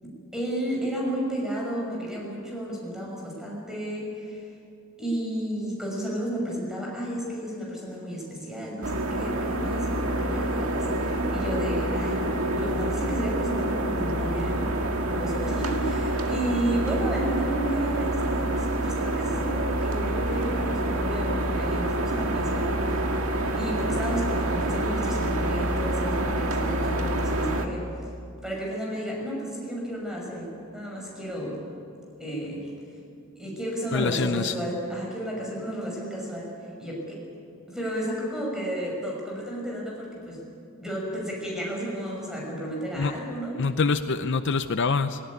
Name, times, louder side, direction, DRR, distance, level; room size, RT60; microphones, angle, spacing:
voice 1, 0.0-4.5 5.0-14.6 15.1-23.1 23.5-27.8 28.4-31.6 32.2-32.7 33.4-36.5 36.8-37.2 37.7-40.4 40.8-43.6, right 1 dB, 5° right, -3 dB, 6.2 m, -32 dB
sound 1, 8.8-27.7, right 1 dB, 75° right, 1.9 m, -27 dB
voice 2, 33.9-34.5 43.0-43.1 43.6-45.2, left 4 dB, 55° left, 10 dB, 0.6 m, -25 dB
18.5 x 18.5 x 9.8 m, 2.6 s
head